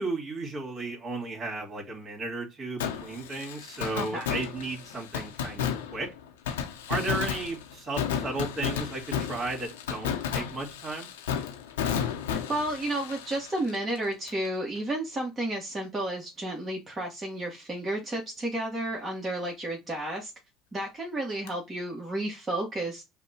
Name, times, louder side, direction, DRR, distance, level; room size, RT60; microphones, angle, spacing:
voice 1, 0.0-6.1 6.9-11.1, right 3 dB, 45° right, 2.3 m, -34 dB
Fireworks, 2.8-14.5 14.7-14.8 21.5-21.6, left 8 dB, 90° left, 0.8 m, -33 dB
voice 2, 3.9-4.3 12.5-20.3 20.7-23.0, right 1 dB, 25° right, 1.4 m, -32 dB
5.7 x 2.3 x 2.9 m
hypercardioid pair, 70°, 0 cm